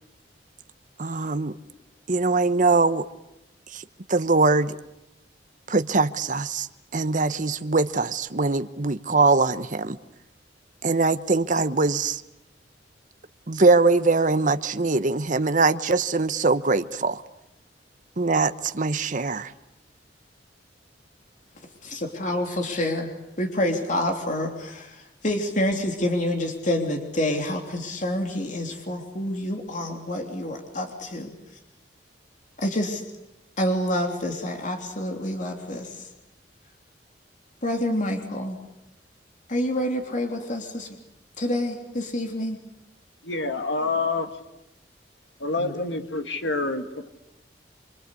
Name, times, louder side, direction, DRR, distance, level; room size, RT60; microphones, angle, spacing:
voice 1, 1.0-1.6 2.1-3.0 3.7-3.8 4.1-4.8 5.7-6.7 6.9-10.0 10.8-12.2 13.5-17.2 18.2-19.5, right 3 dB, 45° right, 1.0 m, -22 dB
voice 2, 21.8-23.1 23.4-31.3 32.6-33.0 33.6-36.1 37.6-38.6 39.5-41.0 41.4-42.6 45.6-45.7, left 1 dB, 45° left, 3.2 m, -27 dB
voice 3, 43.2-44.3 45.4-47.1, left 3 dB, 75° left, 2.2 m, -27 dB
26.5 x 25.0 x 8.4 m
head